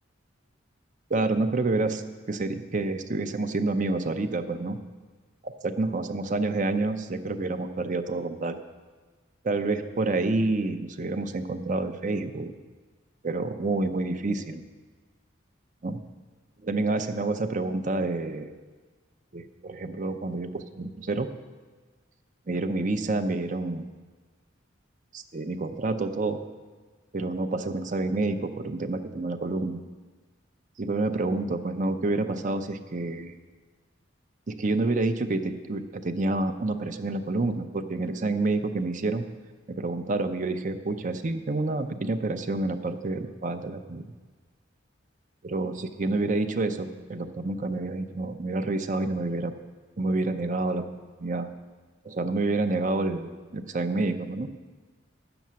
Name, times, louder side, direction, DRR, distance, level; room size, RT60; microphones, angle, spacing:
voice 1, 1.1-4.8 5.4-8.6 9.4-12.5 13.2-14.6 15.8-16.0 16.6-18.5 19.3-21.3 22.5-23.9 25.1-26.4 27.1-29.8 30.8-33.4 34.5-39.3 39.7-44.1 45.4-49.5 50.0-50.8 51.2-51.5 52.0-54.5, right 2 dB, 40° right, 8 dB, 0.6 m, -28 dB
10.0 x 7.0 x 7.5 m, 1.4 s
head